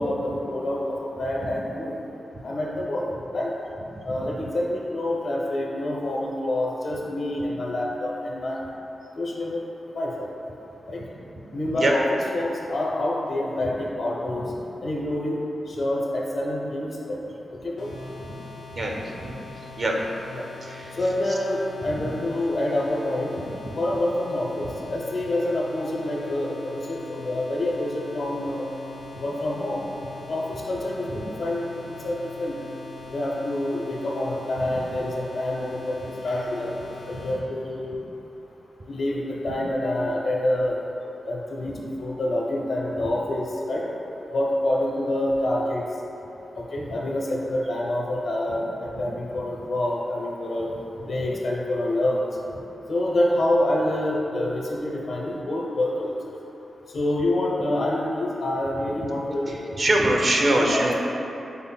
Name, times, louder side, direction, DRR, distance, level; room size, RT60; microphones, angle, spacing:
voice 1, 0.0-1.9 2.4-3.1 3.3-3.5 4.1-8.6 9.2-9.6 9.9-10.3 10.9-11.0 11.5-14.4 14.8-15.4 15.7-17.2 17.6-17.9 20.3-20.5 21.0-23.4 23.8-26.6 26.9-28.7 29.2-29.8 30.3-31.1 31.4-32.6 33.1-36.7 37.1-37.9 38.9-40.8 41.3-41.7 42.0-43.8 44.3-45.8 46.7-50.7 51.1-52.2 52.9-56.1 56.9-59.6 60.4-60.9, left 1 dB, 50° left, -2 dB, 0.6 m, -27 dB
sound 1, 17.8-37.4, left 4 dB, 70° left, 1.1 m, -42 dB
voice 2, 18.7-19.3 19.8-19.9 20.6-20.9 59.5-60.9, right 1 dB, 35° right, 0 dB, 0.4 m, -23 dB
5.5 x 3.8 x 2.2 m, 3.0 s
wide cardioid pair, 175°, 0 cm